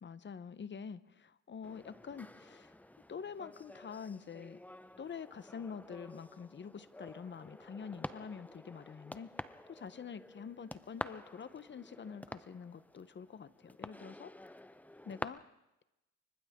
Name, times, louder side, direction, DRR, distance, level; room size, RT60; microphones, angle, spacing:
voice 1, 0.0-2.7 3.1-4.6 5.0-9.3 9.7-14.3 15.0-15.4, left 6 dB, 40° left, 15 dB, 1.0 m, -46 dB
sound 1, 1.6-15.2, left 1 dB, 5° left, 0.7 m, -49 dB
28.5 x 24.5 x 3.7 m, 0.95 s
cardioid pair, 90°, 30 cm